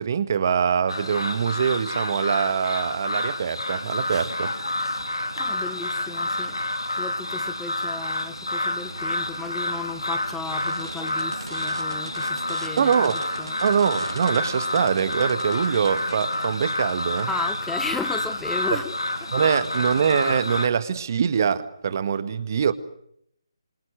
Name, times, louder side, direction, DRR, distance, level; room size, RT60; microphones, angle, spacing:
voice 1, 0.0-4.5 12.8-13.2 13.6-17.3 19.3-22.7, right 7 dB, 40° right, 1.8 m, -23 dB
sound 1, 0.9-20.7, left 2 dB, 85° left, 3.2 m, -29 dB
sound 2, 4.0-20.2, right 2 dB, 75° right, 2.2 m, -41 dB
voice 2, 5.4-6.6 6.9-12.9 13.4-13.6 17.3-18.9 19.2-19.5, left 4 dB, 5° left, 1.0 m, -35 dB
27.0 x 26.0 x 7.5 m
figure-of-eight pair, 150°, 2 cm